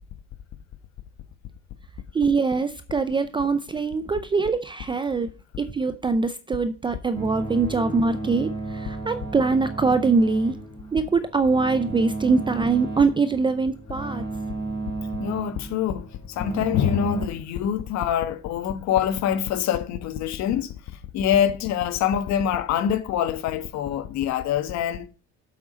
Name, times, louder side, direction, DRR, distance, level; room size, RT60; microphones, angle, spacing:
voice 1, 2.1-5.3 5.6-10.6 10.9-14.2, right 4 dB, 15° right, 0.5 m, -23 dB
sound 1, 7.1-17.3, right 3 dB, 15° left, 2.9 m, -33 dB
voice 2, 15.2-25.1, left 9 dB, 55° left, 1.5 m, -25 dB
7.9 x 7.5 x 5.0 m
cardioid pair, 145°, 33 cm